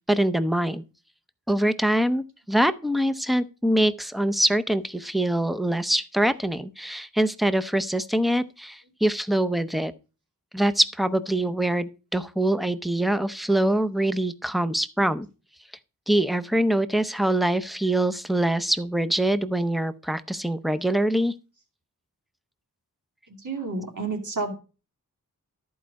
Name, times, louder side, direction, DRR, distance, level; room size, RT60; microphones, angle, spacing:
voice 1, 0.1-0.8 1.5-9.9 10.5-15.3 16.1-21.3, right 1 dB, ahead, 0.6 m, -24 dB
voice 2, 23.3-24.5, right 3 dB, 65° right, 2.5 m, -30 dB
13.5 x 4.7 x 5.2 m
wide cardioid pair, 130°, 33 cm